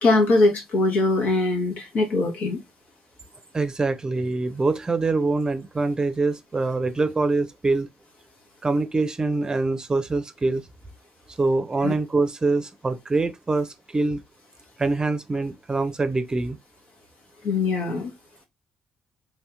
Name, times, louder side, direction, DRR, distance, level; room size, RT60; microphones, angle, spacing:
voice 1, 0.0-2.6 11.8-11.9 17.4-18.1, left 2 dB, 65° left, 1.2 m, -21 dB
voice 2, 3.5-7.9 8.6-10.6 11.4-14.2 14.8-16.6, right 3 dB, 30° right, 0.6 m, -24 dB
3.1 x 2.8 x 2.3 m
hypercardioid pair, 50°, 3 cm